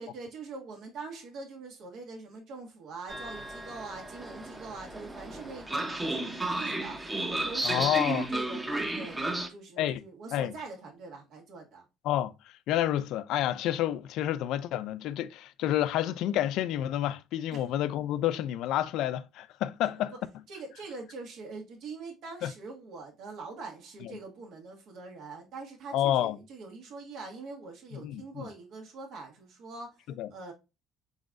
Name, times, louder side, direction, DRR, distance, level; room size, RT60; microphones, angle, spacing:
voice 1, 0.0-7.0 7.3-11.8 17.5-17.6 20.5-30.0 30.3-30.5, right 3 dB, 65° right, 1.5 m, -43 dB
Train, 3.1-9.5, right 2 dB, 15° right, 0.8 m, -33 dB
voice 2, 7.6-8.3 9.8-10.0 10.3-10.5 12.0-12.3 12.7-20.1 22.4-22.5 24.0-24.2 25.9-26.4 27.9-28.5 30.2-30.3, left 12 dB, 70° left, 0.3 m, -29 dB
3.9 x 3.7 x 2.5 m
supercardioid pair, 85°, 0 cm